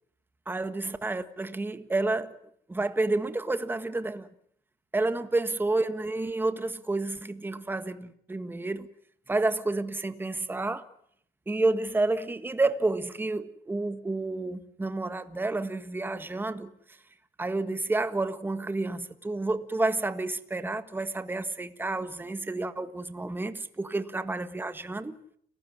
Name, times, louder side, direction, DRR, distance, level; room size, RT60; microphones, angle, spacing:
voice 1, 0.5-2.4 2.7-4.3 4.9-8.9 9.3-10.8 11.5-16.7 17.4-25.2, right 2 dB, 10° right, 1.6 m, -30 dB
29.5 x 16.0 x 9.6 m
cardioid pair, 110°, 17 cm